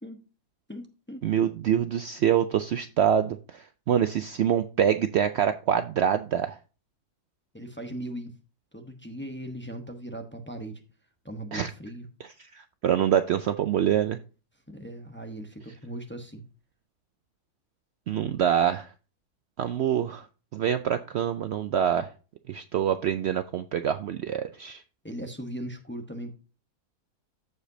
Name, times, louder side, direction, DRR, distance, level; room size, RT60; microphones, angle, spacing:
voice 1, 0.7-1.3 7.5-8.3 8.7-10.8 11.2-12.1 14.7-16.4 25.0-26.3, right 1 dB, 10° left, 4 dB, 0.7 m, -38 dB
voice 2, 1.2-6.6 11.5-11.7 12.2-14.2 18.1-18.9 19.6-20.3 20.5-22.1 22.5-24.8, right 9 dB, 85° right, 10 dB, 0.5 m, -25 dB
14.5 x 5.0 x 2.7 m, 0.34 s
omnidirectional pair, 1.7 m